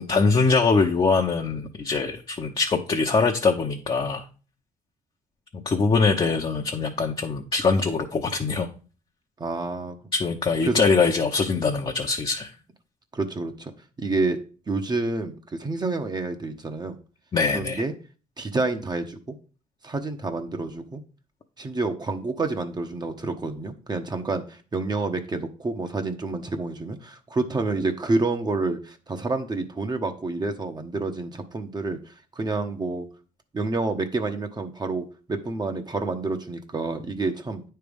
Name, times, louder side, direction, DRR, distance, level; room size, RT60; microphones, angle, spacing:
voice 1, 0.0-4.2 5.5-8.7 10.1-12.5 17.3-17.8, left 4 dB, 35° left, 1 dB, 0.9 m, -23 dB
voice 2, 9.4-10.0 10.7-10.8 13.1-13.7 14.0-14.4 14.7-17.0 17.5-17.9 18.4-19.3 19.8-21.0 21.6-33.1 33.5-37.6, right 3 dB, 30° right, 5 dB, 1.0 m, -28 dB
9.1 x 3.4 x 5.2 m, 0.37 s
cardioid pair, 75°, 15 cm